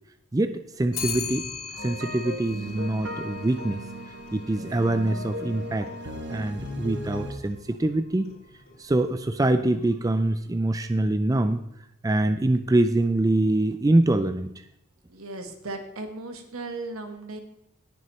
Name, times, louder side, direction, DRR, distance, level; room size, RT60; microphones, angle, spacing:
voice 1, 0.3-1.5 1.7-3.8 4.3-5.9 6.3-8.3 8.8-11.6 12.0-14.5, right 1 dB, 15° right, 9 dB, 0.3 m, -24 dB
Clock, 0.9-10.3, left 5 dB, 75° left, 3.0 m, -41 dB
sound 1, 1.8-7.3, equal, 55° right, 1.2 m, -37 dB
voice 2, 15.1-17.4, right 2 dB, 80° right, 5 dB, 1.5 m, -36 dB
19.0 x 6.9 x 3.2 m, 0.75 s
head